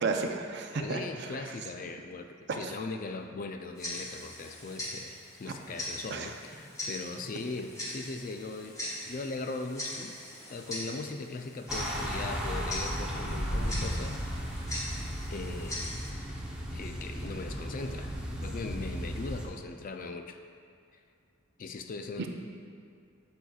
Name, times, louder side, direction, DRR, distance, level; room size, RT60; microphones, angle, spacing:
voice 1, 0.0-1.4 2.5-2.7 6.1-6.3, right 4 dB, 55° right, 4 dB, 0.5 m, -32 dB
voice 2, 0.7-8.8 9.1-10.2 10.5-14.2 15.3-15.9 16.2-16.3 16.7-18.1 18.4-20.4 21.6-22.3, left 3 dB, 45° left, 6 dB, 0.4 m, -39 dB
Tick-tock, 3.8-16.1, left 1 dB, 15° left, 1.0 m, -41 dB
sound 1, 11.7-19.5, equal, 5° right, 0.8 m, -35 dB
8.0 x 7.7 x 2.4 m, 2.4 s
head